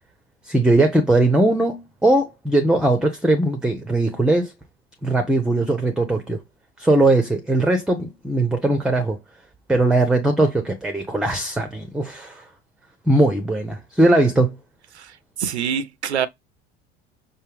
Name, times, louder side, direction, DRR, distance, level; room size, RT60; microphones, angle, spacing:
voice 1, 0.4-4.5 5.0-6.4 6.8-9.2 9.7-12.5 13.1-14.6, right 2 dB, 5° right, 0.6 m, -19 dB
voice 2, 14.9-16.3, right 8 dB, 80° right, 0.5 m, -26 dB
5.4 x 2.2 x 3.3 m
figure-of-eight pair, 65°, 33 cm